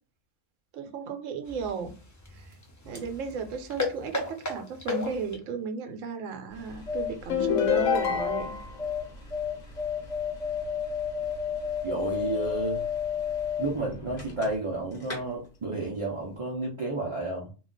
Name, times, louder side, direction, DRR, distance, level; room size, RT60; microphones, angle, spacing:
voice 1, 0.7-2.0 2.3-2.6 2.8-8.6, right 5 dB, 80° right, 1.0 m, -35 dB
water drops, 1.4-5.5, left 3 dB, 20° left, 0.5 m, -36 dB
sound 1, 6.5-14.7 15.0-15.2, left 7 dB, 40° left, 1.0 m, -32 dB
Good answer harp glissando, 7.3-8.8, left 8 dB, 75° left, 0.9 m, -26 dB
voice 2, 11.8-12.8 13.6-17.5, right 2 dB, 50° right, 0.3 m, -31 dB
2.4 x 2.2 x 3.7 m
omnidirectional pair, 1.3 m